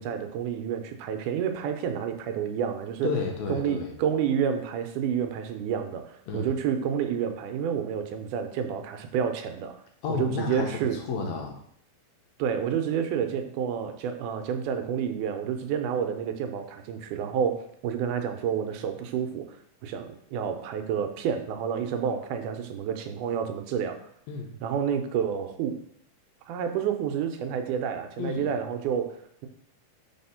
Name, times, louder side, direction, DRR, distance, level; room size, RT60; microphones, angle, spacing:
voice 1, 0.0-3.1 3.5-9.7 10.1-11.0 12.4-24.1 24.6-25.8 26.5-29.5, right 8 dB, 85° right, 7 dB, 2.1 m, -29 dB
voice 2, 3.0-4.0 6.3-6.5 10.0-11.6 24.3-24.6 28.2-28.5, left 5 dB, 70° left, 1 dB, 1.9 m, -32 dB
4.3 x 4.1 x 5.5 m, 0.67 s
omnidirectional pair, 3.6 m